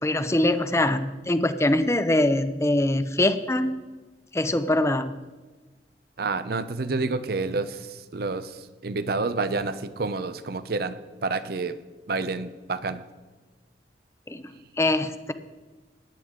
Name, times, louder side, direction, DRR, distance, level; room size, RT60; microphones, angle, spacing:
voice 1, 0.0-3.8 4.3-5.1 14.3-14.4 14.8-15.3, left 1 dB, 15° left, 11 dB, 0.5 m, -23 dB
voice 2, 6.2-11.8 12.1-13.0, right 3 dB, 55° right, 13 dB, 0.6 m, -29 dB
14.5 x 10.5 x 3.7 m, 1.3 s
head